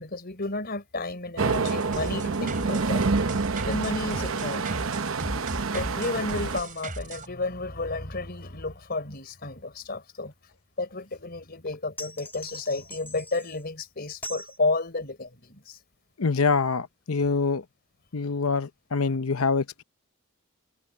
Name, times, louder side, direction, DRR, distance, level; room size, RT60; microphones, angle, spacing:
voice 1, 0.0-3.0 3.6-4.7 5.7-10.3 10.8-15.8, left 3 dB, 45° left, 4.2 m, -32 dB
sound 1, 1.4-7.3, right 2 dB, 40° right, 3.7 m, -37 dB
sound 2, 1.4-6.6, right 4 dB, 65° right, 0.9 m, -27 dB
sound 3, 12.0-13.6 14.2-14.6, left 1 dB, 10° left, 1.8 m, -41 dB
voice 2, 16.2-17.6 18.1-19.8, left 4 dB, 80° left, 0.8 m, -25 dB
head